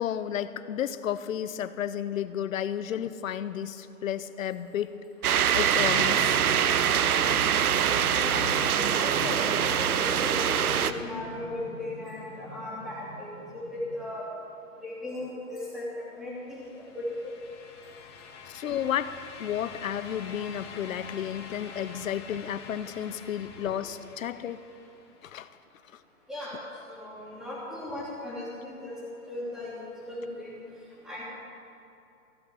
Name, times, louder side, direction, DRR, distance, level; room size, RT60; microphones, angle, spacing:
voice 1, 0.0-4.9 5.5-6.4 18.5-19.1 19.4-24.6 25.3-25.5, left 10 dB, 65° left, 14 dB, 0.8 m, -32 dB
sound 1, 5.2-10.9, right 9 dB, 75° right, 0.8 m, -24 dB
sound 2, 5.7-14.1, equal, 25° right, 1.6 m, -42 dB
voice 2, 8.1-14.3 14.8-16.7 16.9-17.3 26.3-29.0 29.3-30.6 31.0-31.2, left 1 dB, ahead, -8 dB, 2.8 m, -37 dB
sound 3, 16.4-25.3, left 5 dB, 20° left, 0.7 m, -46 dB
15.5 x 6.6 x 9.4 m, 2.7 s
hypercardioid pair, 155°, 44 cm